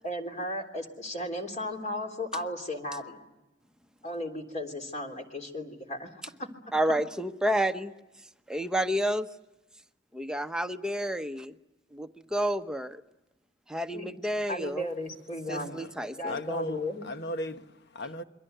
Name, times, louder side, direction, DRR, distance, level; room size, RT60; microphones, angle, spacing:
voice 1, 0.0-3.2 4.0-6.1 6.4-6.5 13.9-14.2 14.5-15.8 16.2-17.0, left 1 dB, 40° left, 3.4 m, -35 dB
voice 2, 6.7-7.9 8.5-9.3 10.1-11.5 11.9-13.0 13.7-14.9 15.5-16.4, right 1 dB, 5° right, 0.9 m, -30 dB
voice 3, 15.5-16.0 16.3-18.2, left 1 dB, 60° left, 1.3 m, -37 dB
28.0 x 23.5 x 8.0 m
head